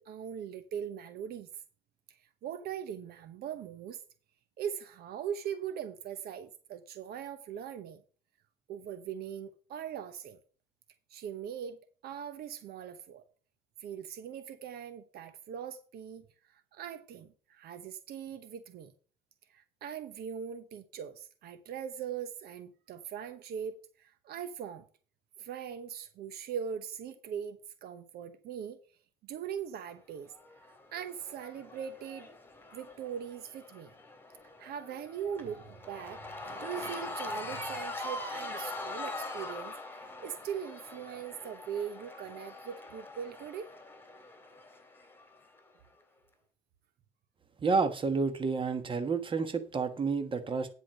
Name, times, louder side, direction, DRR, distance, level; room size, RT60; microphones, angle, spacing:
voice 1, 0.0-1.5 2.1-4.0 4.6-8.0 8.7-10.4 11.1-11.8 12.0-13.2 13.8-18.9 19.5-24.9 25.4-28.8 29.2-30.3 30.6-32.3 32.7-33.9 34.6-39.7 40.2-43.7, right 8 dB, 70° right, 0.9 m, -41 dB
Cheering / Crowd, 30.3-45.6, left 2 dB, 10° left, 2.0 m, -43 dB
voice 2, 47.6-50.7, right 4 dB, 30° right, 1.3 m, -30 dB
9.8 x 4.6 x 6.5 m
cardioid pair, 110°, 17 cm